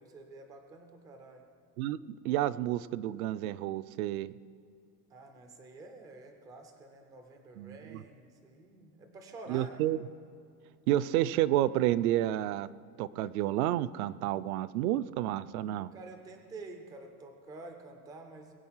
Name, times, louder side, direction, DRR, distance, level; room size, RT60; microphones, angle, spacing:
voice 1, 0.0-1.5 5.1-9.9 15.8-18.5, right 3 dB, 10° right, 5 dB, 0.3 m, -49 dB
voice 2, 2.2-4.3 7.6-8.0 9.5-10.0 10.9-12.7 13.0-15.9, right 13 dB, 70° right, 16 dB, 0.6 m, -30 dB
21.0 x 7.9 x 5.6 m, 2.4 s
supercardioid pair, 170°, 46 cm